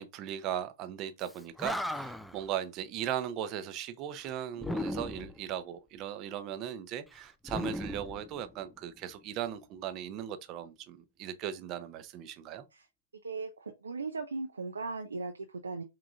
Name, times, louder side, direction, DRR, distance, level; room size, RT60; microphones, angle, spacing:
voice 1, 0.0-12.7, right 10 dB, 30° right, 0.6 m, -38 dB
Animal, 1.3-1.4 1.6-2.4 4.6-5.4 7.4-8.8, left 1 dB, 5° left, 0.3 m, -36 dB
voice 2, 13.2-15.8, right 3 dB, 75° right, 0.6 m, -38 dB
4.8 x 3.8 x 2.4 m
figure-of-eight pair, 105°, 0 cm